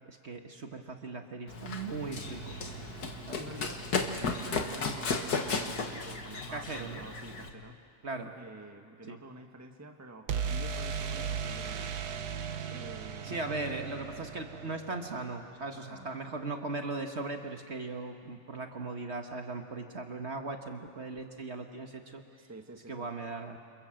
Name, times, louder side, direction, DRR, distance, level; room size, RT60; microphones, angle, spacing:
voice 1, 0.1-2.6 3.3-3.4 6.5-7.0 8.0-8.3 9.1-9.2 13.2-22.2 22.9-23.6, right 3 dB, 45° right, 4 dB, 1.6 m, -38 dB
Run, 1.5-7.5, left 4 dB, 80° left, 2.1 m, -35 dB
sound 1, 2.2-4.2 10.3-16.1, right 6 dB, 80° right, 1.5 m, -38 dB
voice 2, 3.3-7.8 8.2-11.9 12.7-13.9 15.7-16.1 22.4-23.1, right 2 dB, 10° right, 4 dB, 1.4 m, -48 dB
28.0 x 27.5 x 7.7 m, 2.3 s
omnidirectional pair, 1.7 m